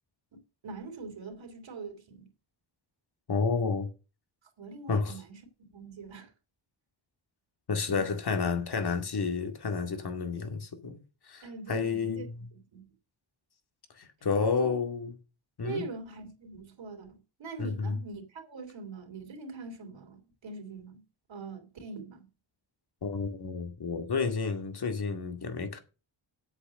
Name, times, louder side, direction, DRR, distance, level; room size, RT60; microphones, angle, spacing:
voice 1, 0.3-2.3 4.6-5.4 5.7-6.3 7.9-8.0 11.4-12.9 14.4-14.8 15.6-21.0 21.3-22.3, right 4 dB, 65° right, 3.3 m, -43 dB
voice 2, 3.3-3.9 4.9-5.2 7.7-11.0 11.3-12.3 14.0-15.1 15.6-15.9 17.6-18.0 23.0-25.8, left 5 dB, 50° left, 2.2 m, -30 dB
8.3 x 8.3 x 6.5 m
wide cardioid pair, 135°, 49 cm